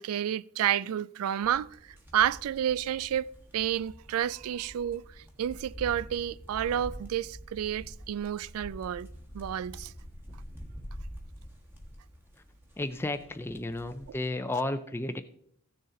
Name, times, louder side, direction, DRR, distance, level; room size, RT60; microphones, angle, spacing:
voice 1, 0.0-9.1 9.3-9.9, right 10 dB, 80° right, 0.3 m, -30 dB
sound 1, 1.4-14.1, equal, 10° right, 1.4 m, -47 dB
voice 2, 12.8-15.2, left 2 dB, 10° left, 0.4 m, -33 dB
14.5 x 6.6 x 3.8 m
head